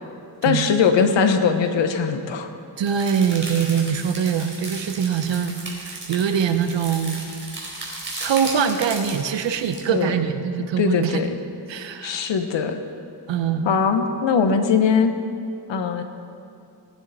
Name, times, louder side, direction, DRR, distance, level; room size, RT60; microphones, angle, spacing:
voice 1, 0.4-2.5 9.9-10.1 10.6-11.4 12.0-12.8 13.6-15.1 15.7-16.0, left 6 dB, 85° left, 7 dB, 1.2 m, -20 dB
voice 2, 2.8-7.3 8.2-11.2 11.7-12.3 13.3-13.8, right 7 dB, 85° right, 8 dB, 1.0 m, -23 dB
sound 1, 2.9-9.8, right 2 dB, 25° right, 3.9 m, -35 dB
19.5 x 9.4 x 4.2 m, 2.5 s
cardioid pair, 85°, 43 cm